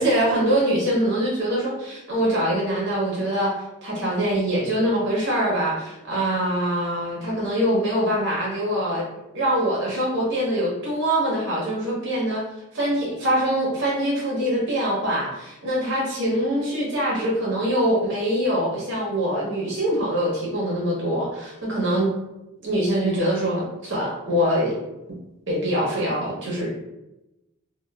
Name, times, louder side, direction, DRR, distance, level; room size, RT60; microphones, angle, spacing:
voice 1, 0.0-9.0 9.3-12.4 12.7-22.1 22.6-24.8 25.5-26.7, equal, 55° right, -4 dB, 0.7 m, -24 dB
2.8 x 2.0 x 2.3 m, 0.94 s
head